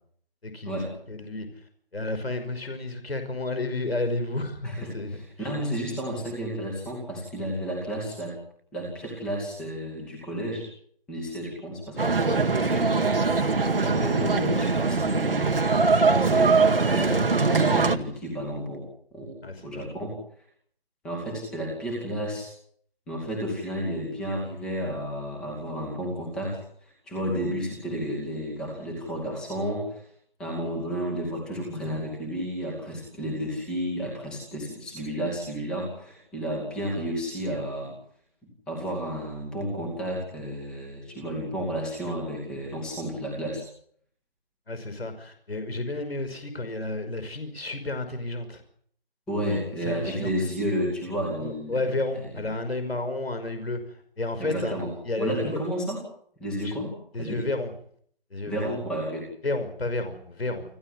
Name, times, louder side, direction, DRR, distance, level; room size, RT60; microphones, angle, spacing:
voice 1, 0.4-0.8 1.1-1.5 1.9-5.5 19.4-19.9 44.7-48.6 49.5-50.3 51.4-53.8 54.2-54.8 55.0-55.6 56.6-56.7 57.1-57.7 58.3-58.7 59.4-60.6, left 2 dB, 85° left, 9 dB, 5.7 m, -31 dB
voice 2, 4.6-8.4 8.7-10.7 11.1-13.2 13.6-15.7 16.1-18.9 19.1-20.2 21.0-22.5 23.1-30.0 30.4-37.9 38.7-43.6 49.3-51.8 52.3-52.5 54.4-56.0 56.4-57.5 58.5-59.3, equal, ahead, -1 dB, 2.4 m, -32 dB
sound 1, 12.0-18.0, right 4 dB, 70° right, 2.2 m, -22 dB
29.5 x 12.5 x 9.8 m, 0.63 s
figure-of-eight pair, 180°, 30 cm